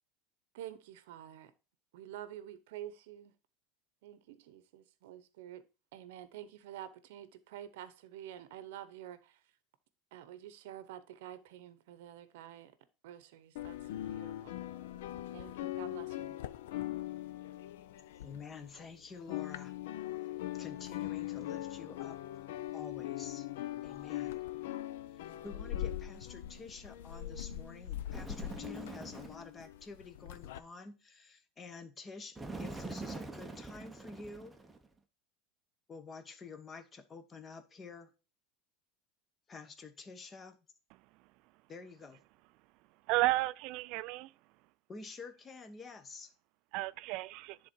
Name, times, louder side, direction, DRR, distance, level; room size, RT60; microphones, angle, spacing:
voice 1, 0.5-1.5 1.9-3.3 4.0-5.6 5.9-9.5 10.1-12.7 13.0-14.6 15.3-16.4, right 11 dB, 80° right, 0.7 m, -49 dB
sound 1, 13.6-18.9 19.1-30.6, left 13 dB, 90° left, 0.5 m, -41 dB
voice 2, 18.2-19.7 20.5-22.4 22.7-23.5 23.8-24.4 25.1-34.6 35.9-38.1 39.5-40.6 41.7-42.2 44.9-46.3, left 4 dB, 20° left, 0.9 m, -49 dB
Bird, 28.1-29.5 32.4-34.9, right 3 dB, 10° right, 0.7 m, -44 dB
voice 3, 43.1-44.3 46.7-47.6, right 20 dB, 55° right, 0.3 m, -32 dB
10.0 x 3.8 x 4.4 m
supercardioid pair, 145°, 0 cm